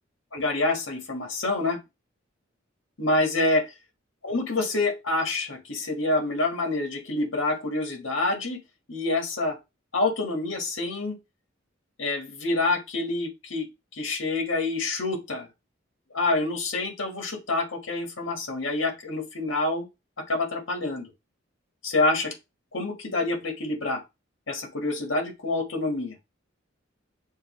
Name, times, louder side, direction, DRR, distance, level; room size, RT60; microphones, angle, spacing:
voice 1, 0.3-1.8 3.0-3.6 4.2-8.6 8.9-9.6 9.9-11.2 12.0-13.7 13.9-15.5 16.1-19.9 20.3-21.1 21.8-22.3 22.7-24.0 24.5-26.1, left 2 dB, 75° left, 3 dB, 1.5 m, -27 dB
6.3 x 2.2 x 3.1 m, 0.24 s
head